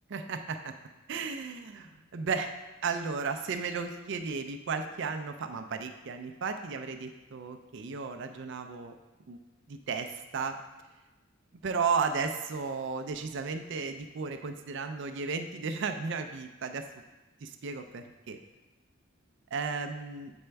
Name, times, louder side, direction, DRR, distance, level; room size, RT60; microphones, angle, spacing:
voice 1, 0.1-0.7 1.1-2.5 2.8-8.9 9.3-9.4 9.7-10.6 11.6-16.9 17.4-18.4 19.5-20.3, right 5 dB, 60° right, 6 dB, 0.4 m, -34 dB
7.7 x 4.3 x 3.4 m, 1.1 s
head